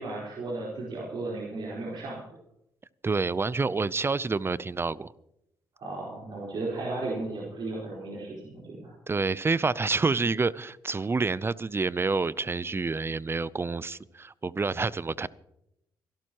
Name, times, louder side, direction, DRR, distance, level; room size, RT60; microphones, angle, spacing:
voice 1, 0.0-2.2 5.8-8.9, right 2 dB, 65° right, -5 dB, 4.3 m, -35 dB
voice 2, 3.0-5.1 9.1-15.3, right 4 dB, 25° right, 19 dB, 0.6 m, -28 dB
26.0 x 12.0 x 3.0 m, 0.80 s
supercardioid pair, 60°, 9 cm